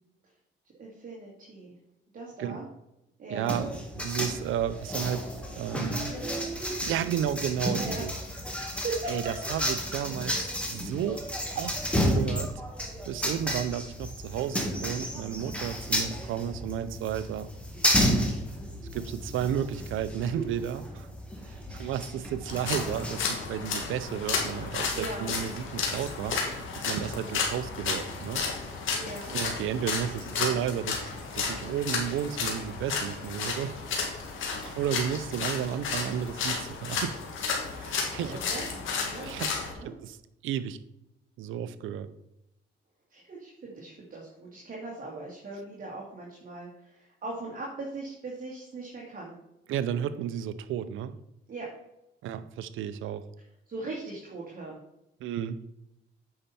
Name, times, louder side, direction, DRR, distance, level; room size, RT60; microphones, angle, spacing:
voice 1, 0.8-1.8 2.1-2.6 3.2-3.6 5.8-7.1 7.6-8.1 8.8-9.3 12.9-13.1 20.3-20.5 24.9-25.3 28.9-29.3 38.0-39.5 39.7-39.9 43.1-49.3 51.5-51.7 53.7-54.8, right 3 dB, 45° right, -3 dB, 2.2 m, -39 dB
voice 2, 3.3-5.3 5.6-6.2 6.8-8.1 8.5-8.7 9.1-12.6 13.0-17.5 18.9-21.1 21.5-28.5 29.2-31.1 31.3-33.8 34.4-37.2 37.7-38.4 39.2-39.5 39.8-40.2 40.4-40.8 41.4-42.1 49.7-51.2 52.2-53.3 55.2-55.6, right 9 dB, 85° right, 14 dB, 0.6 m, -33 dB
sound 1, 3.5-23.2, equal, 5° left, 2.0 m, -32 dB
sound 2, 22.5-39.7, left 5 dB, 80° left, 2.1 m, -32 dB
8.7 x 5.7 x 4.2 m, 0.87 s
cardioid pair, 90°, 20 cm